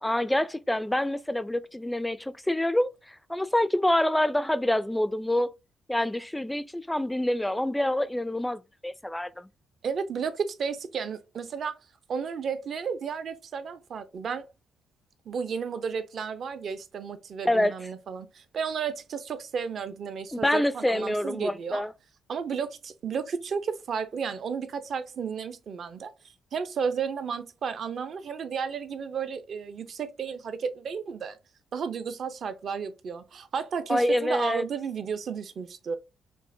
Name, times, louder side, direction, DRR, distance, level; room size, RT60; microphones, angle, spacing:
voice 1, 0.0-5.5 5.9-9.5 17.4-17.8 20.3-21.9 33.9-34.6, left 1 dB, 5° left, 0.4 m, -26 dB
voice 2, 9.8-11.7 12.1-14.5 15.3-21.8 22.3-26.1 26.5-31.4 31.7-36.0, right 6 dB, 55° right, 0.6 m, -33 dB
5.4 x 2.1 x 2.6 m
cardioid pair, 90°, 0 cm